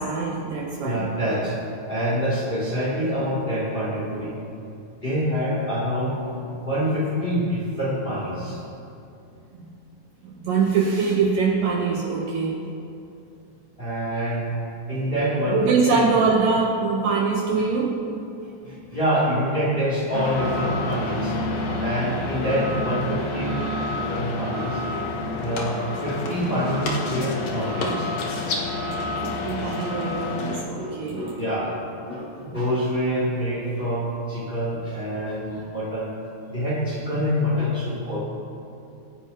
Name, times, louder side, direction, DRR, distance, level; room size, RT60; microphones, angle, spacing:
voice 1, 0.0-1.1 9.6-9.7 10.2-12.6 15.5-18.0 29.2-31.3 37.1-37.3, right 4 dB, 70° right, -2 dB, 2.4 m, -23 dB
voice 2, 0.8-1.6 1.9-4.4 5.0-8.6 13.8-14.5 14.9-15.6 15.9-16.0 18.6-21.3 21.8-23.6 23.8-24.8 25.4-28.1 30.8-31.8 32.1-36.1 36.5-38.2, equal, 15° left, -7 dB, 2.8 m, -26 dB
sound 1, 20.1-30.6, left 2 dB, 60° left, 1.7 m, -28 dB
25.5 x 10.0 x 3.0 m, 2.7 s
omnidirectional pair, 4.6 m